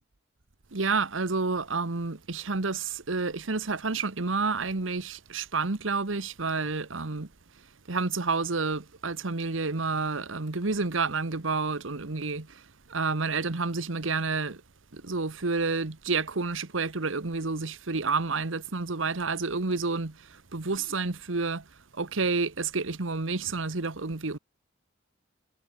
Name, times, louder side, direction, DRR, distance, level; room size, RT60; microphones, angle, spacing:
voice 1, 0.7-7.3 7.9-12.6 12.9-14.6 14.9-21.6 21.9-24.4, right 4 dB, 80° right, 1.3 m, -29 dB
head